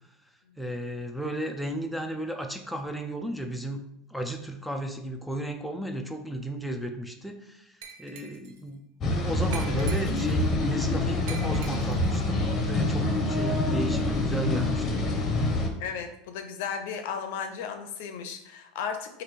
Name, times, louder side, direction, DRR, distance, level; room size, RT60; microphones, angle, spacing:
voice 1, 0.6-3.8 4.1-8.8 9.2-15.0, right 1 dB, ahead, 3 dB, 0.3 m, -34 dB
Glass, 7.8-8.6 9.5-10.5 11.3-12.2, right 6 dB, 75° right, 0.5 m, -43 dB
sound 1, 9.0-15.7, left 2 dB, 30° left, 0.7 m, -26 dB
voice 2, 15.8-19.2, left 6 dB, 75° left, 6 dB, 0.6 m, -35 dB
3.1 x 2.5 x 4.4 m, 0.80 s
supercardioid pair, 140°, 0 cm